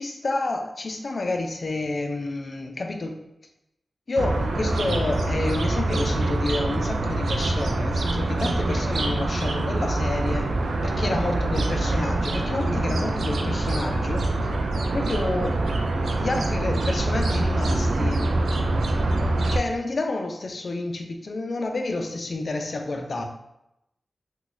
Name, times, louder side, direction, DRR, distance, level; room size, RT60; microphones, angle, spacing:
voice 1, 0.0-3.2 4.1-14.6 14.9-15.6 16.2-18.3 19.3-23.2, left 2 dB, 60° left, 4 dB, 0.4 m, -29 dB
sound 1, 4.2-19.6, right 2 dB, 85° right, 0.3 m, -25 dB
2.3 x 2.3 x 3.8 m, 0.86 s
cardioid pair, 40°, 0 cm